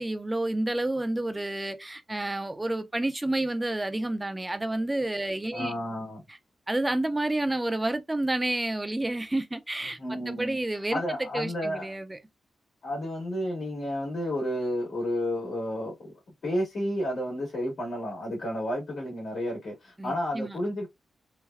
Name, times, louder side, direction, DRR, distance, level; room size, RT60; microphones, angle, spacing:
voice 1, 0.0-5.7 6.7-11.0 11.3-12.2 20.0-20.6, right 1 dB, 20° right, 0.6 m, -29 dB
voice 2, 5.5-6.2 10.0-10.6 10.9-11.9 12.8-16.1 16.4-20.9, equal, 70° left, 1.7 m, -31 dB
3.4 x 2.2 x 2.2 m
cardioid pair, 60°, 0 cm